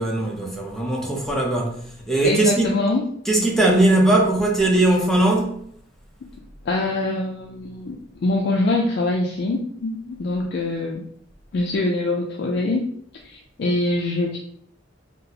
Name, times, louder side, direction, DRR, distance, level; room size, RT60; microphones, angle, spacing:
voice 1, 0.0-1.7 2.1-2.7 3.3-5.6, right 2 dB, ahead, -2 dB, 0.6 m, -19 dB
voice 2, 2.2-3.1 6.7-11.0 11.5-12.9 13.2-14.4, left 2 dB, 55° left, 0 dB, 0.4 m, -24 dB
4.1 x 2.0 x 2.7 m, 0.66 s
head